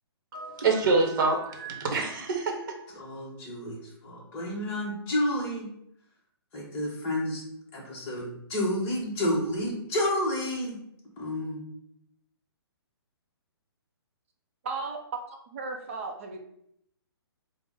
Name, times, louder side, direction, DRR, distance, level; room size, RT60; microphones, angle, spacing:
voice 1, 0.3-3.0, right 3 dB, 50° right, 2 dB, 0.9 m, -26 dB
voice 2, 2.9-5.7 6.5-7.4 7.7-10.8 11.2-11.6, left 1 dB, 15° left, -4 dB, 0.9 m, -30 dB
voice 3, 14.6-16.4, right 4 dB, 30° right, 2 dB, 0.5 m, -35 dB
4.8 x 2.1 x 3.5 m, 0.72 s
hypercardioid pair, 165°, 14 cm